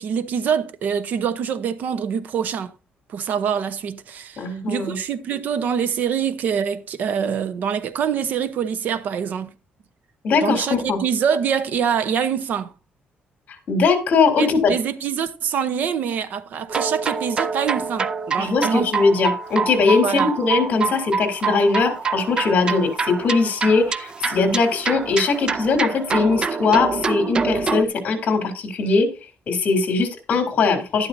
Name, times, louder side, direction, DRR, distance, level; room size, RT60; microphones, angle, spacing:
voice 1, 0.0-2.7 3.1-9.5 10.4-12.7 14.4-18.9 20.0-20.3, right 7 dB, 55° right, 0.9 m, -25 dB
voice 2, 4.4-5.0 10.2-11.0 13.7-14.7 18.4-29.1 29.5-31.1, left 4 dB, 45° left, 3.3 m, -20 dB
sound 1, 16.7-27.8, right 5 dB, 25° right, 0.5 m, -26 dB
12.0 x 11.5 x 2.7 m
cardioid pair, 165°, 3 cm